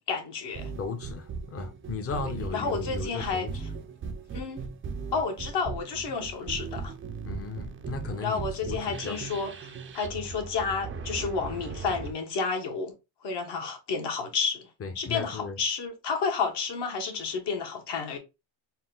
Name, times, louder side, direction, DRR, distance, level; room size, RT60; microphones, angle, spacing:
voice 1, 0.1-0.7 2.5-3.5 4.3-4.6 5.1-6.9 8.2-12.9 13.2-14.7 14.9-18.2, left 5 dB, 55° left, 1.3 m, -31 dB
sound 1, 0.5-12.1, right 5 dB, 25° right, 0.5 m, -38 dB
voice 2, 0.8-3.6 7.2-9.2 13.6-13.7 14.8-15.6, left 4 dB, 30° left, 0.8 m, -36 dB
4.2 x 2.2 x 3.9 m
cardioid pair, 125°, 50 cm